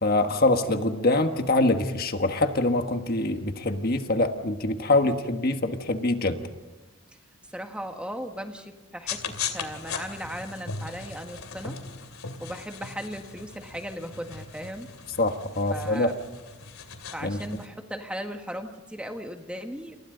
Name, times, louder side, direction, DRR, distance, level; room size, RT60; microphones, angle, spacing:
voice 1, 0.0-6.4 15.2-16.1 17.2-17.4, left 2 dB, 45° left, 6 dB, 1.4 m, -24 dB
voice 2, 7.5-11.8 12.4-14.9 15.7-16.1 17.1-20.0, equal, 5° right, 4 dB, 1.6 m, -37 dB
sound 1, 9.1-17.7, left 6 dB, 85° left, 2.7 m, -38 dB
29.0 x 29.0 x 3.9 m, 1.1 s
head